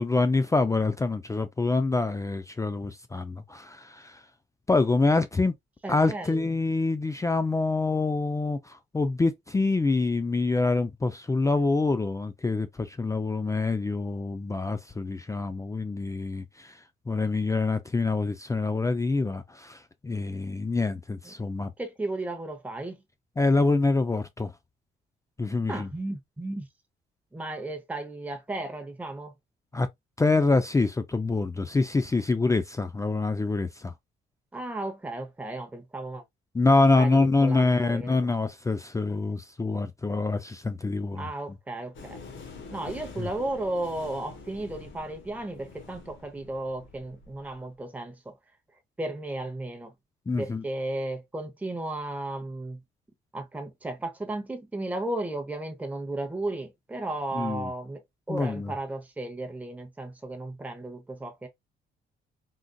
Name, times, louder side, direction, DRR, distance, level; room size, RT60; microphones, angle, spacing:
voice 1, 0.0-4.2 4.7-5.5 5.9-16.8 17.1-21.7 23.4-24.5 25.4-25.9 29.7-29.9 30.2-33.9 36.5-41.3 43.2-43.3 50.3-50.6 57.3-57.7 58.3-58.7, left 3 dB, 15° left, 0.4 m, -26 dB
voice 2, 5.8-6.5 21.2-21.3 21.8-23.0 25.7-26.7 27.3-29.3 34.5-36.2 36.9-38.3 41.1-42.2 42.7-48.3 49.0-49.9 50.4-52.8 53.3-58.0 58.3-61.5, right 2 dB, 5° right, 0.8 m, -34 dB
sound 1, 41.9-47.6, left 4 dB, 75° left, 1.2 m, -46 dB
3.8 x 2.5 x 2.2 m
cardioid pair, 90°, 20 cm